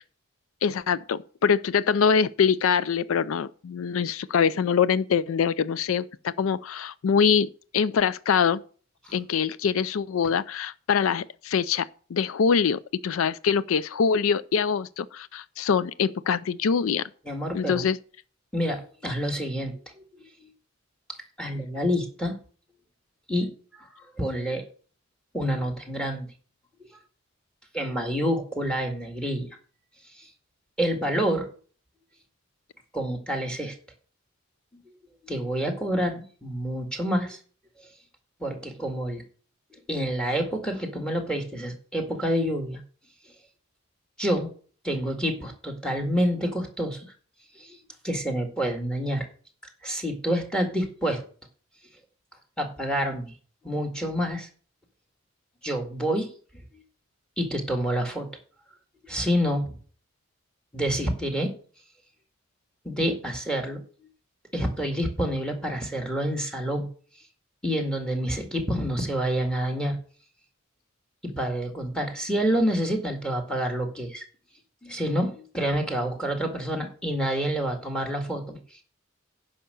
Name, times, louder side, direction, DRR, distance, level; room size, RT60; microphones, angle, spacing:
voice 1, 0.6-8.6 9.1-17.1 17.5-18.0, left 6 dB, 80° left, 0.4 m, -24 dB
voice 2, 17.3-17.8 18.5-20.0 20.4-20.5 21.4-22.3 23.3-24.6 25.3-26.3 27.7-29.5 30.1-30.3 30.8-31.5 32.9-33.7 34.7-34.8 35.2-37.4 37.8-37.9 38.4-39.2 39.7-42.8 44.2-44.5 44.8-47.0 47.6-47.8 48.0-49.3 49.8-51.2 52.6-53.3 53.6-54.5 55.6-56.3 57.4-58.3 59.0-59.7 60.7-61.5 62.8-63.8 64.5-66.9 67.6-70.0 71.4-74.2 74.8-78.8, equal, 5° left, 1.9 m, -28 dB
10.0 x 5.6 x 6.7 m
head